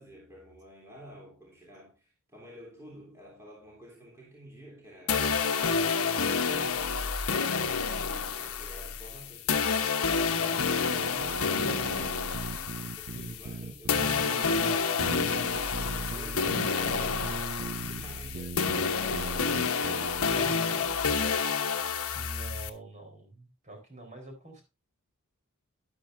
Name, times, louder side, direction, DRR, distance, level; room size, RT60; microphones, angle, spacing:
voice 1, 0.0-5.4 5.7-6.7 7.9-12.1 12.4-21.6, right 1 dB, 15° right, 3.2 m, -50 dB
sound 1, 5.1-13.6 13.9-22.7, left 5 dB, 75° left, 1.1 m, -29 dB
sound 2, 10.3-20.3, right 4 dB, 55° right, 0.5 m, -40 dB
voice 2, 20.4-21.1 22.1-24.6, right 1 dB, 35° right, 4.3 m, -47 dB
13.0 x 10.5 x 2.6 m
head